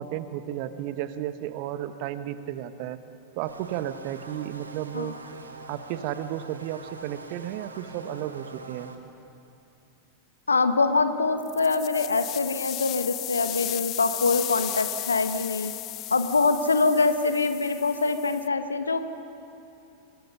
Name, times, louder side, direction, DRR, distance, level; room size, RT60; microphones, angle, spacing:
voice 1, 0.0-3.0 3.3-5.2 5.7-8.9, right 12 dB, 45° right, 12 dB, 1.0 m, -33 dB
sound 1, 3.4-9.0, right 3 dB, 75° right, 1.6 m, -44 dB
voice 2, 10.5-15.7 16.1-19.1, left 3 dB, 75° left, 10 dB, 1.0 m, -24 dB
sound 2, 11.4-18.5, left 16 dB, 35° left, 0.4 m, -35 dB
26.5 x 20.5 x 5.5 m, 2.8 s
figure-of-eight pair, 90°, 0 cm